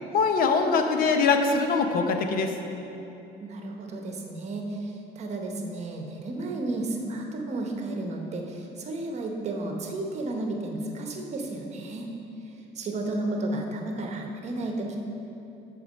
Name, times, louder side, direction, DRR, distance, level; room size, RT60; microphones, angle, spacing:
voice 1, 0.1-2.5, left 4 dB, 50° left, 6 dB, 0.7 m, -23 dB
voice 2, 3.4-12.1 12.7-15.1, right 2 dB, 35° right, 2 dB, 1.0 m, -32 dB
8.4 x 4.8 x 6.4 m, 2.9 s
cardioid pair, 155°, 19 cm